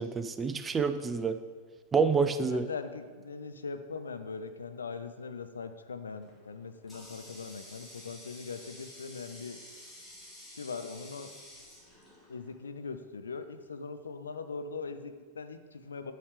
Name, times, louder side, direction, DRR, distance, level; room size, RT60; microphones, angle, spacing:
voice 1, 0.0-1.4 1.9-2.6, right 5 dB, 20° right, 10 dB, 0.3 m, -28 dB
voice 2, 2.5-9.6 10.5-11.3 12.3-16.1, left 4 dB, 70° left, 9 dB, 0.4 m, -41 dB
Water tap faucet, 6.2-12.7, left 1 dB, 10° left, 1.9 m, -51 dB
7.9 x 4.7 x 3.3 m, 1.5 s
figure-of-eight pair, 90°, 0 cm